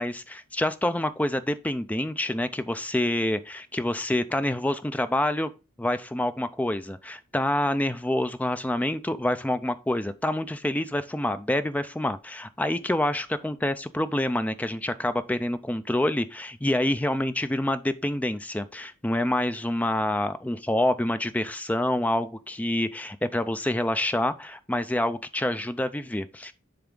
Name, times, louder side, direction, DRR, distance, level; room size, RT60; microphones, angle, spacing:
voice 1, 0.0-5.5 5.8-26.5, left 1 dB, 5° left, 0.4 m, -27 dB
10.0 x 3.5 x 3.7 m
head